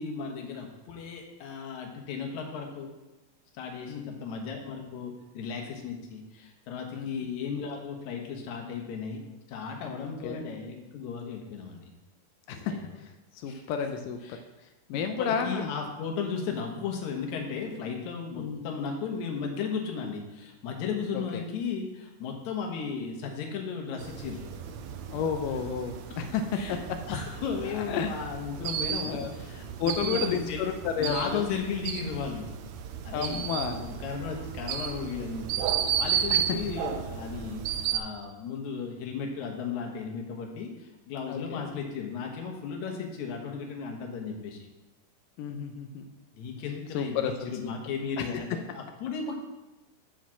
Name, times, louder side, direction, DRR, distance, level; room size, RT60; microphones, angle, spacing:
voice 1, 0.0-2.9 3.5-9.2 9.5-11.9 12.6-12.8 13.5-13.6 14.3-14.4 14.9-24.5 26.5-30.6 31.0-32.5 33.0-33.4 33.8-35.7 36.0-37.6 37.9-44.6 46.3-49.3, left 6 dB, 65° left, 2 dB, 2.4 m, -35 dB
voice 2, 3.9-4.2 6.9-7.3 10.0-10.4 12.5-14.2 14.9-15.7 16.5-16.6 18.4-18.7 21.1-21.4 25.1-26.8 27.7-28.1 28.9-29.3 29.8-31.5 33.1-33.9 36.3-36.6 41.3-41.8 45.4-46.1 46.9-47.7 48.2-48.3, left 6 dB, 90° left, 6 dB, 2.2 m, -32 dB
sound 1, 24.0-38.0, right 8 dB, 80° right, 1.6 m, -33 dB
7.7 x 5.2 x 7.3 m, 1.0 s
omnidirectional pair, 3.7 m